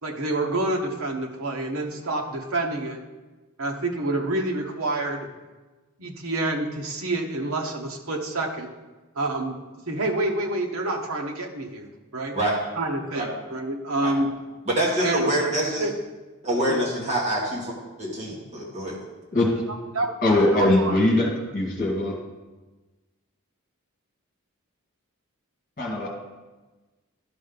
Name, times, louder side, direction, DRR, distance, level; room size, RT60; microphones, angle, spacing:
voice 1, 0.0-3.0 3.6-5.3 6.0-8.7 9.1-9.6 9.9-11.9 12.1-12.4 12.8-14.3 15.0-15.5 15.8-15.9 16.7-16.8 19.9-20.1 20.5-21.3, right 2 dB, 75° right, 1 dB, 1.1 m, -28 dB
voice 2, 14.7-15.9 16.4-19.0, right 1 dB, 30° right, -6 dB, 2.0 m, -26 dB
voice 3, 20.2-21.3 21.5-22.1 25.8-26.1, left 1 dB, 40° left, -1 dB, 1.9 m, -21 dB
11.5 x 5.4 x 4.0 m, 1.2 s
head